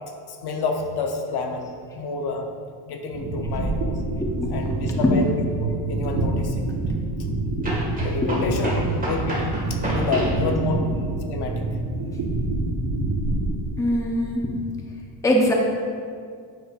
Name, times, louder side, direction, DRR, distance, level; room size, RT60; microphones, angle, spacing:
voice 1, 0.3-2.5 2.9-4.0 4.5-5.3 5.6-6.7 8.0-9.4 9.9-10.8 11.2-11.6, left 3 dB, 55° left, 3 dB, 0.8 m, -29 dB
sound 1, 3.1-13.5, right 2 dB, 90° right, 1.2 m, -27 dB
voice 2, 4.2-5.4 8.2-8.8 9.2-9.3 10.1-10.9 13.8-14.4 15.2-15.5, left 1 dB, 5° left, -1 dB, 0.7 m, -24 dB
sound 2, 5.2-5.3 7.6-10.5, right 1 dB, 15° right, 1.7 m, -29 dB
9.2 x 6.4 x 2.5 m, 2.1 s
cardioid pair, 135°, 48 cm